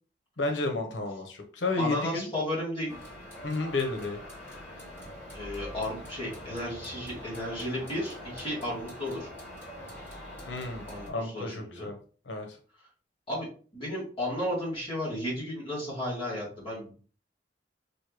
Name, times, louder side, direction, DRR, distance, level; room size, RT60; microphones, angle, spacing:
voice 1, 0.4-2.3 3.4-4.2 10.5-12.0 12.3-12.5, left 3 dB, 90° left, 4 dB, 0.9 m, -31 dB
voice 2, 1.8-3.0 5.3-9.3 10.9-11.9 13.3-13.5 13.7-16.9, left 1 dB, 30° left, -6 dB, 2.1 m, -33 dB
sound 1, 2.9-11.1, left 1 dB, 15° left, 2.5 m, -44 dB
6.2 x 2.7 x 3.1 m, 0.40 s
head